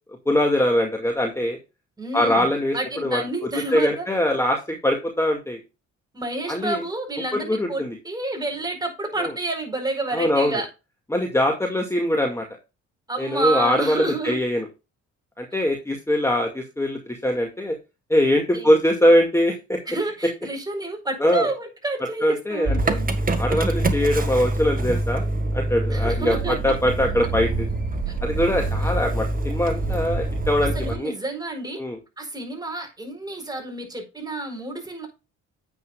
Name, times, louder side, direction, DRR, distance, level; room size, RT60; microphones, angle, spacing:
voice 1, 0.3-1.6 2.1-2.8 3.0-3.2 3.7-5.6 6.5-6.8 7.3-8.0 9.2-9.3 10.1-10.6 11.1-12.5 13.2-14.7 15.4-17.8 18.1-19.8 21.2-21.5 22.2-23.0 23.4-25.2 25.5-27.7 28.2-31.1 31.8-32.0, left 1 dB, 10° left, 2.1 m, -22 dB
voice 2, 2.0-2.5 2.7-4.1 6.1-10.7 13.1-14.4 18.5-18.7 19.9-23.1 25.9-26.5 28.1-28.2 30.7-31.8 32.2-35.1, right 2 dB, 15° right, 4.5 m, -29 dB
Motor vehicle (road) / Engine starting, 22.6-31.0, right 2 dB, 30° right, 1.8 m, -25 dB
9.8 x 8.7 x 2.4 m
cardioid pair, 90°, 30 cm